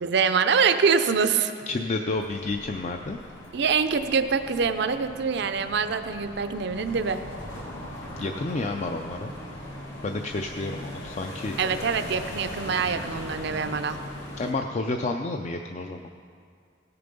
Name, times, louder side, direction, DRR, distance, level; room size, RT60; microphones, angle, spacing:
voice 1, 0.0-1.5 3.5-7.2 11.6-14.0, right 5 dB, 60° right, 9 dB, 0.5 m, -24 dB
voice 2, 1.7-3.2 8.2-9.3 10.0-11.8 14.4-16.1, left 2 dB, 40° left, 4 dB, 0.4 m, -30 dB
sound 1, 2.1-14.5, left 1 dB, 80° left, 2.2 m, -39 dB
16.5 x 6.9 x 5.3 m, 2.2 s
head